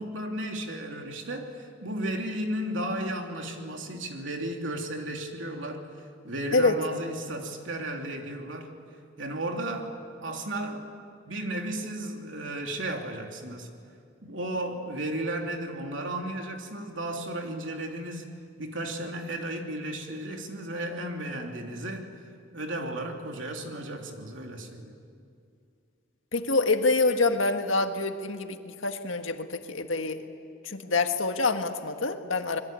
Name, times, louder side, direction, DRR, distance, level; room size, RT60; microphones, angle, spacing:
voice 1, 0.0-5.8 6.2-8.7 9.2-10.0 10.2-10.9 11.3-13.7 14.2-18.3 18.6-22.1 22.5-24.9, right 1 dB, 75° right, 2 dB, 3.1 m, -34 dB
voice 2, 26.3-28.6 28.8-30.2 30.7-32.6, left 3 dB, 85° left, 6 dB, 1.7 m, -26 dB
26.0 x 22.0 x 9.0 m, 2.4 s
head